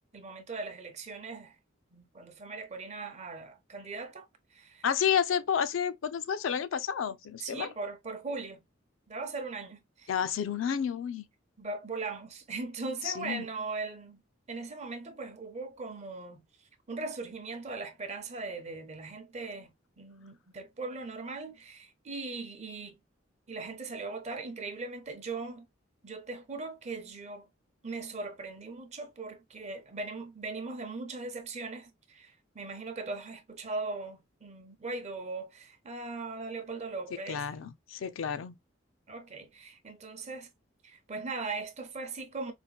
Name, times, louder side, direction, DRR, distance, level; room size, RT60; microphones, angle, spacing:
voice 1, 0.1-1.6 1.9-4.8 7.4-8.6 9.1-10.1 11.6-14.2 14.5-16.4 16.9-23.0 23.5-25.7 26.0-27.5 27.8-37.5 39.1-40.5 40.8-42.5, right 3 dB, 35° right, 0.6 m, -39 dB
voice 2, 4.8-7.7 10.1-11.3 13.0-13.5 37.3-38.5, left 8 dB, 75° left, 0.4 m, -30 dB
4.1 x 2.1 x 2.3 m
head